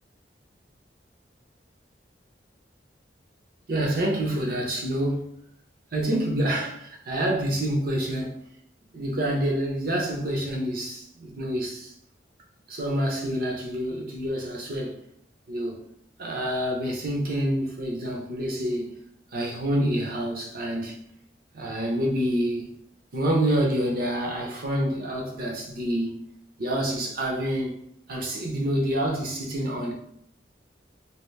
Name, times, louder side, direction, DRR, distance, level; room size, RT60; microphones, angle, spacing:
voice 1, 3.7-5.3 5.9-8.4 8.9-11.9 12.7-15.0 15.5-15.8 16.2-19.0 19.3-21.0 21.5-22.7 23.1-26.2 26.6-27.8 28.1-29.9, right 1 dB, 55° right, 0.8 m, -27 dB
2.9 x 2.6 x 3.2 m
head